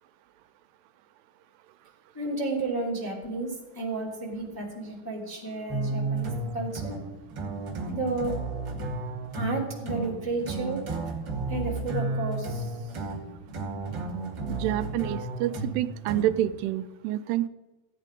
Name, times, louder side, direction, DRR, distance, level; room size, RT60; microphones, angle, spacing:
voice 1, 2.1-7.0 7.8-8.4 9.3-10.8 11.5-13.0, right 2 dB, 5° left, -2 dB, 2.1 m, -32 dB
sound 1, 5.7-16.6, right 3 dB, 40° right, 1.7 m, -33 dB
voice 2, 14.5-17.5, right 12 dB, 85° right, 13 dB, 2.6 m, -28 dB
15.5 x 9.1 x 5.2 m, 1.1 s
omnidirectional pair, 4.7 m